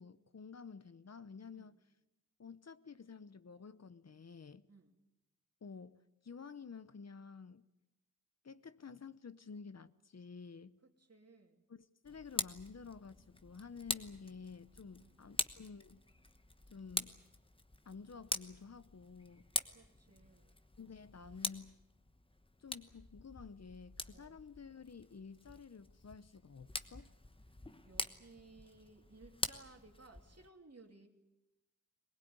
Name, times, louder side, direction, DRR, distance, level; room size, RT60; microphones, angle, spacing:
voice 1, 0.0-1.8 2.4-4.6 5.6-7.6 8.4-10.8 11.7-16.0 16.7-17.2 17.9-19.4 20.8-21.8 22.6-27.1, left 5 dB, 50° left, 0.8 m, -51 dB
voice 2, 10.8-11.6 15.0-15.2 19.7-20.6 24.1-24.4 27.9-31.1, right 3 dB, 50° right, 2.9 m, -60 dB
Tick, 12.0-30.5, left 2 dB, 15° left, 1.1 m, -45 dB
22.5 x 20.0 x 9.5 m
wide cardioid pair, 85°, 32 cm